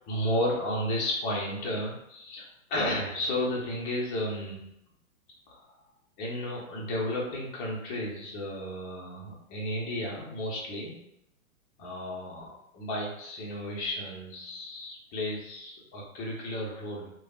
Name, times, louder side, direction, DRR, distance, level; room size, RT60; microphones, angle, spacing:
voice 1, 0.1-4.7 5.5-5.7 6.2-11.0 11.8-17.1, left 1 dB, 20° left, -4 dB, 0.6 m, -33 dB
3.3 x 2.2 x 2.3 m, 0.78 s
hypercardioid pair, 125°, 43 cm